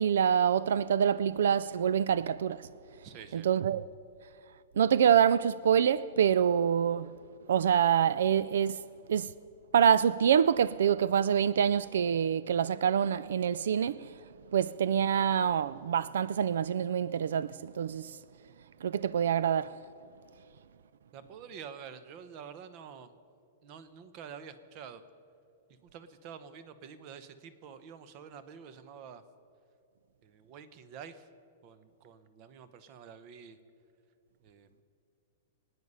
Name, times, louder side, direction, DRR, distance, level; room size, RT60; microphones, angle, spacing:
voice 1, 0.0-2.7 3.3-3.8 4.8-7.2 7.5-8.8 9.1-9.3 9.7-14.1 14.5-18.2 18.8-19.7, right 8 dB, 85° right, 0.3 m, -26 dB
voice 2, 3.0-3.5 21.1-23.2 23.6-25.0 25.7-29.2 30.2-31.3 31.6-33.6 34.4-34.8, right 7 dB, 30° right, 0.8 m, -48 dB
24.5 x 9.6 x 5.5 m
supercardioid pair, 170°, 0 cm